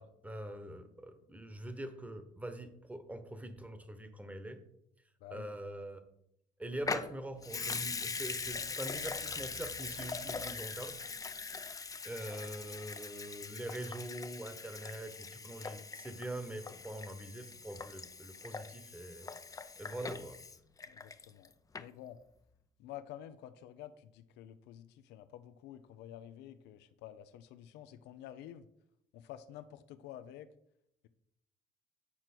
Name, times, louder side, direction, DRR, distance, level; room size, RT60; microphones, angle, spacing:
voice 1, 0.0-4.6 5.3-6.0 6.6-11.0 12.0-20.4, right 1 dB, 10° right, 9 dB, 1.1 m, -44 dB
Water tap faucet / Sink (filling or washing) / Liquid, 6.8-21.5 21.7-21.8, left 4 dB, 20° left, 0.5 m, -42 dB
voice 2, 20.9-22.2 22.8-28.7 29.1-30.5, left 11 dB, 85° left, 11 dB, 0.6 m, -50 dB
8.5 x 4.5 x 6.0 m, 0.77 s
cardioid pair, 110°, 17 cm